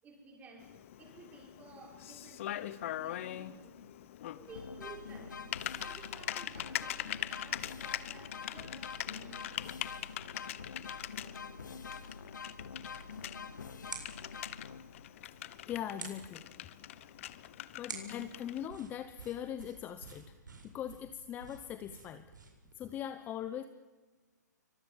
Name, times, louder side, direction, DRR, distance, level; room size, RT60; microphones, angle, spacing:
voice 1, 0.0-3.9 4.4-9.9, right 3 dB, 15° right, 1 dB, 6.1 m, -54 dB
Typing, 0.6-18.7, left 13 dB, 45° left, 1.2 m, -43 dB
sound 1, 4.5-15.1, left 5 dB, 80° left, 2.2 m, -46 dB
sound 2, 12.8-22.8, right 5 dB, 85° right, 7.7 m, -51 dB
voice 2, 15.7-16.5 17.0-17.2 17.8-20.4 20.6-22.3 22.8-23.6, left 10 dB, 15° left, 11 dB, 0.9 m, -41 dB
26.5 x 24.5 x 7.5 m, 1.3 s
hypercardioid pair, 145°, 10 cm